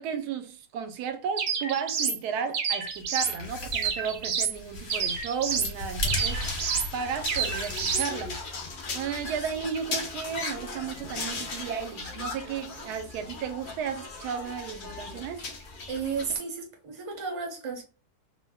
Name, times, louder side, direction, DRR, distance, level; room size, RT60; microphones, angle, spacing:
voice 1, 0.0-6.4 6.9-8.4 8.9-15.5, right 7 dB, 90° right, 1.1 m, -34 dB
sound 1, 1.4-2.2 2.5-3.4 3.7-4.6 4.9-5.7 6.1-6.9 7.3-8.1, right 6 dB, 70° right, 1.0 m, -29 dB
sound 2, 2.9-8.4, left 1 dB, 55° left, 1.1 m, -36 dB
sound 3, 6.1-16.4, left 3 dB, 75° left, 0.4 m, -38 dB
voice 2, 15.9-17.8, right 5 dB, 35° right, 0.5 m, -33 dB
2.7 x 2.1 x 3.3 m
omnidirectional pair, 1.6 m